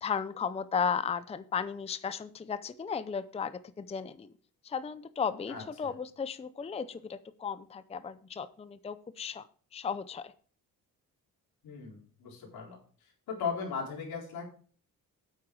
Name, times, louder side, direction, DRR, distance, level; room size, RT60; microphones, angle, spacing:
voice 1, 0.0-4.3 4.6-9.5 9.7-10.3, left 6 dB, 20° left, 14 dB, 0.5 m, -35 dB
voice 2, 5.5-5.9 11.6-12.8 13.3-14.4, left 6 dB, 90° left, -1 dB, 4.2 m, -37 dB
8.7 x 8.6 x 4.7 m, 0.43 s
cardioid pair, 115°, 35 cm